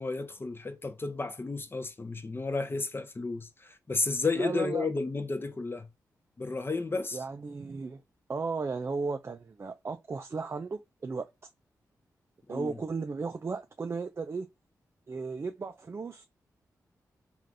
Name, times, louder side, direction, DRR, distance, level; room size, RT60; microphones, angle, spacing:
voice 1, 0.0-5.9 6.4-7.2 12.5-12.8, left 3 dB, 35° left, 0.5 m, -32 dB
voice 2, 4.4-4.9 7.1-8.0 8.3-11.3 12.5-14.5 15.1-16.2, right 4 dB, 40° right, 0.3 m, -35 dB
3.2 x 2.4 x 2.5 m
cardioid pair, 50°, 7 cm